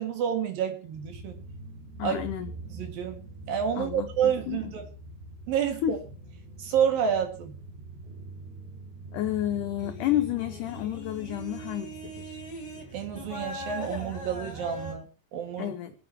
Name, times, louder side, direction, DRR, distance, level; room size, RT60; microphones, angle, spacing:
voice 1, 0.0-1.4 2.0-2.2 2.7-4.9 5.5-6.0 6.6-7.5 12.9-15.1 15.3-15.7, right 8 dB, 65° right, 5 dB, 3.5 m, -29 dB
sound 1, 0.9-15.0, right 2 dB, 90° right, 3.9 m, -44 dB
voice 2, 2.0-2.5 3.8-4.7 5.8-6.0 9.1-12.4 15.6-15.9, left 12 dB, 85° left, 10 dB, 1.8 m, -31 dB
sound 2, 9.8-12.8 13.1-14.9, equal, 30° left, 2.5 m, -40 dB
26.0 x 9.0 x 2.9 m, 0.33 s
omnidirectional pair, 4.6 m